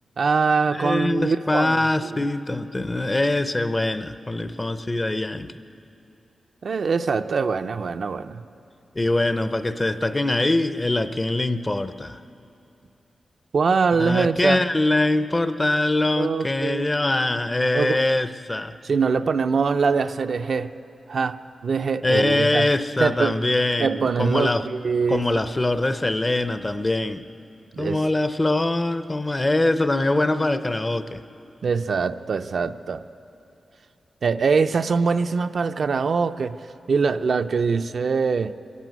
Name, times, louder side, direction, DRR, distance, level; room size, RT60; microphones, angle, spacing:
voice 1, 0.2-1.8 2.1-2.2 6.6-8.4 13.5-14.6 16.2-16.8 17.7-18.0 18.8-20.7 21.1-22.7 23.0-23.4 23.8-25.4 27.7-28.0 31.6-33.0 34.2-36.6 36.9-38.5, right 5 dB, 55° right, 9 dB, 0.5 m, -23 dB
voice 2, 0.7-5.5 9.0-12.2 13.9-18.7 22.0-24.7 25.1-27.2 27.8-31.2, left 2 dB, 20° left, 11 dB, 0.5 m, -23 dB
24.0 x 13.5 x 9.3 m, 2.7 s
wide cardioid pair, 175°, 0 cm